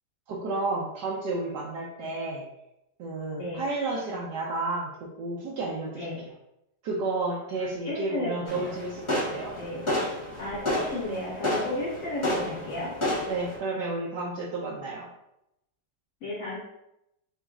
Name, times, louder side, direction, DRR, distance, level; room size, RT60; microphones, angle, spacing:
voice 1, 0.3-2.5 3.0-6.3 6.8-9.5 13.3-15.1, right 2 dB, 70° right, -4 dB, 1.3 m, -32 dB
voice 2, 7.6-8.7 9.6-9.9 10.4-12.9 16.2-16.6, left 1 dB, 50° left, -7 dB, 2.0 m, -33 dB
sound 1, 8.4-13.6, left 1 dB, 25° left, 0.7 m, -31 dB
6.9 x 2.7 x 2.4 m, 0.84 s
omnidirectional pair, 1.9 m